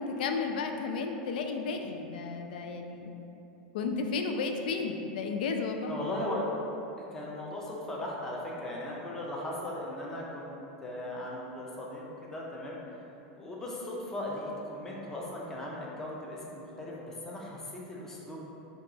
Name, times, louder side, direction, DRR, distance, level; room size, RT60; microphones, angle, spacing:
voice 1, 0.0-3.1 3.7-6.0, left 4 dB, 90° left, 4 dB, 0.3 m, -33 dB
voice 2, 5.9-6.5 7.1-10.5 10.8-18.4, left 1 dB, 10° left, -4 dB, 0.4 m, -38 dB
3.9 x 2.3 x 3.8 m, 3.0 s
supercardioid pair, 170°, 5 cm